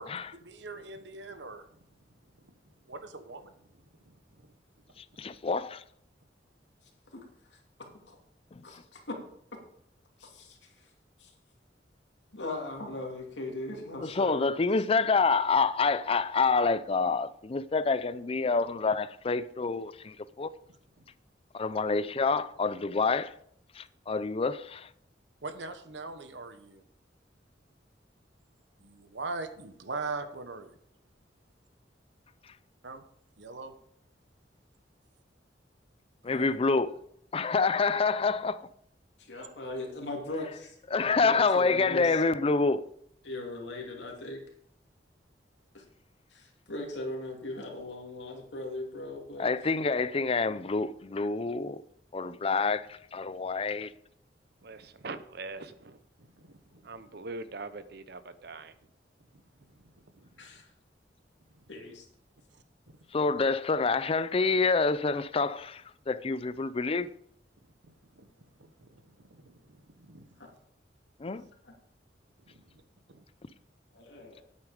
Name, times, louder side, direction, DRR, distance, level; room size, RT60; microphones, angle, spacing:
voice 1, 0.0-1.8 2.4-2.5 2.8-4.5 25.4-26.8 28.8-30.7 32.8-33.0 33.4-33.7 36.2-36.5 54.8-55.0 56.2-57.0 59.3-60.4 61.5-61.6 62.5-63.0 67.8-70.5 72.5-72.8 73.1-73.2, right 3 dB, 85° right, 1.1 m, -43 dB
voice 2, 5.0-5.8 8.6-8.7 14.0-20.5 21.5-23.3 23.8-24.9 36.2-37.0 37.3-38.6 40.9-42.9 49.4-51.8 52.1-53.9 63.1-67.1 71.2-71.4, left 4 dB, 35° left, 0.5 m, -27 dB
voice 3, 8.6-9.2 10.2-10.9 11.2-11.3 12.3-14.8 39.2-42.2 43.2-44.4 45.7-45.8 46.3-49.5 60.4-60.7 61.7-62.1 70.4-70.5 71.6-71.8 73.9-74.4, left 2 dB, 85° left, 2.6 m, -39 dB
voice 4, 54.6-56.0 56.8-58.7, right 3 dB, 65° right, 0.8 m, -42 dB
9.6 x 8.5 x 5.0 m
head